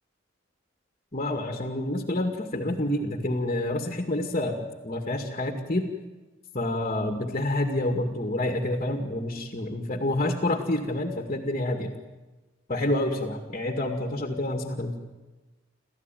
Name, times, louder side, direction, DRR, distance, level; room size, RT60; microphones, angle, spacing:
voice 1, 1.1-5.9 6.5-11.9 12.7-15.0, left 1 dB, 35° left, 4 dB, 2.2 m, -28 dB
28.5 x 14.5 x 9.2 m, 1.2 s
head